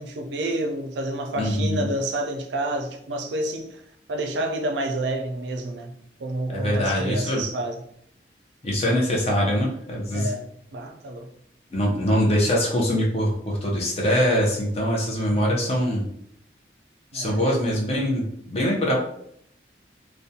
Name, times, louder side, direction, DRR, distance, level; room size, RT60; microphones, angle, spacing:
voice 1, 0.0-3.8 4.1-5.9 6.2-7.8 10.1-10.5 10.7-11.3 17.1-17.6, right 1 dB, 80° right, 0.4 m, -29 dB
voice 2, 1.4-1.9 6.5-7.4 8.6-10.3 11.7-16.1 17.1-19.0, equal, 35° left, 0.6 m, -23 dB
2.4 x 2.1 x 2.6 m
head